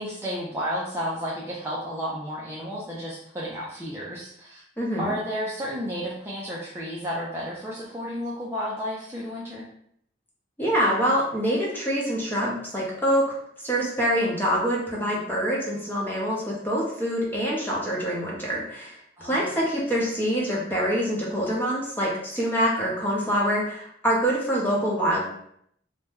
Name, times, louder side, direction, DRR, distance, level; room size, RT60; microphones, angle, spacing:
voice 1, 0.0-4.6 5.0-9.6 19.2-19.4, equal, 15° right, -6 dB, 0.4 m, -32 dB
voice 2, 4.8-5.1 10.6-13.3 13.6-25.3, equal, 10° left, -5 dB, 0.8 m, -25 dB
2.8 x 2.2 x 3.3 m, 0.69 s
head